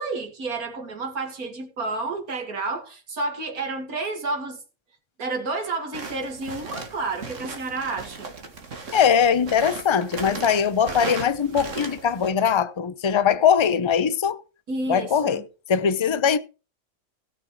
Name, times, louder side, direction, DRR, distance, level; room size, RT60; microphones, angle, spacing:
voice 1, 0.0-4.6 5.2-8.3 14.7-15.4, right 3 dB, 90° right, 2.6 m, -30 dB
sound 1, 5.9-12.3, right 4 dB, 60° right, 2.1 m, -37 dB
voice 2, 8.9-14.4 14.9-15.4 15.7-16.4, left 7 dB, 35° left, 0.4 m, -21 dB
16.5 x 6.2 x 4.7 m
omnidirectional pair, 1.5 m